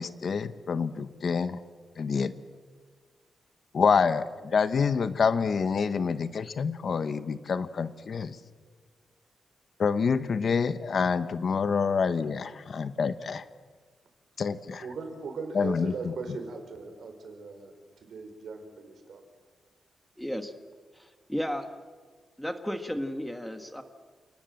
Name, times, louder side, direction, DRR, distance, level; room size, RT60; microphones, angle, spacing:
voice 1, 0.0-1.6 2.0-2.3 3.7-8.4 9.8-13.4 14.4-14.8 15.5-15.9, left 5 dB, 45° left, 12 dB, 1.0 m, -27 dB
voice 2, 14.8-19.2, right 4 dB, 60° right, 6 dB, 4.7 m, -39 dB
voice 3, 20.2-20.5 20.9-21.7 22.4-23.8, equal, 5° left, 7 dB, 1.3 m, -33 dB
29.0 x 19.5 x 7.7 m, 1.5 s
wide cardioid pair, 150°, 0 cm